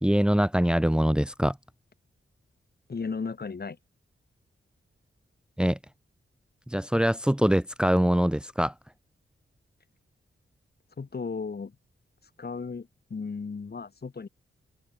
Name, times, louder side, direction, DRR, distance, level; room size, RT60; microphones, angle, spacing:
voice 1, 0.0-1.6 5.6-5.8 6.7-8.7, equal, 5° right, 1.8 m, -23 dB
voice 2, 2.9-3.8 11.0-11.8 12.4-14.3, left 5 dB, 50° left, 6.1 m, -35 dB
wide cardioid pair, 115°, 21 cm